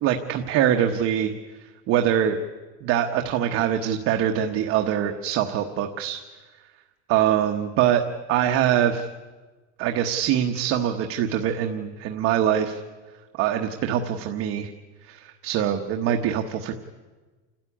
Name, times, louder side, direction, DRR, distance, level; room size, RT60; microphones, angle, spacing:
voice 1, 0.0-1.3 1.9-2.4 2.8-6.2 7.1-8.0 8.3-9.1 9.8-12.8 13.4-14.7 15.1-16.7, right 10 dB, 40° right, 5 dB, 1.1 m, -23 dB
29.0 x 13.5 x 10.0 m, 1.3 s
cardioid pair, 180°, 33 cm